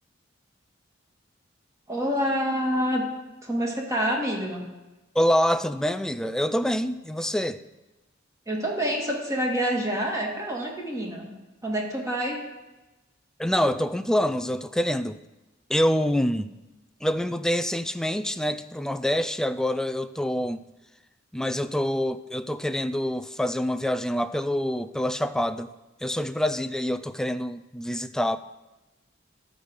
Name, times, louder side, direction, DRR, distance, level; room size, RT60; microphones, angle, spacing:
voice 1, 1.9-3.1 3.4-4.6 8.5-11.3 11.6-12.4, equal, 15° right, -1 dB, 2.0 m, -27 dB
voice 2, 5.1-7.6 13.4-15.2 15.7-16.5 17.0-20.6 21.3-25.7 26.0-28.4, equal, 5° left, 12 dB, 0.3 m, -26 dB
11.5 x 5.2 x 6.3 m, 1.1 s
head